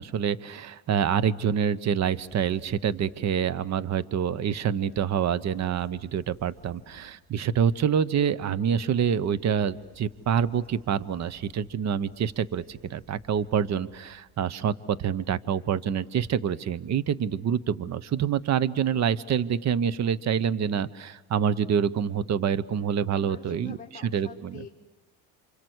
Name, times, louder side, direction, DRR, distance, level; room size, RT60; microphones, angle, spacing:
voice 1, 0.0-23.8 24.1-24.6, right 8 dB, 40° right, 18 dB, 0.9 m, -26 dB
sound 1, 2.0-3.5 5.0-5.1 5.3-7.3 9.0-14.4, right 1 dB, 60° right, 7.9 m, -58 dB
voice 2, 23.1-24.7, left 5 dB, 15° left, 1 dB, 1.8 m, -45 dB
27.5 x 26.5 x 8.1 m, 1.1 s
supercardioid pair, 100°, 42 cm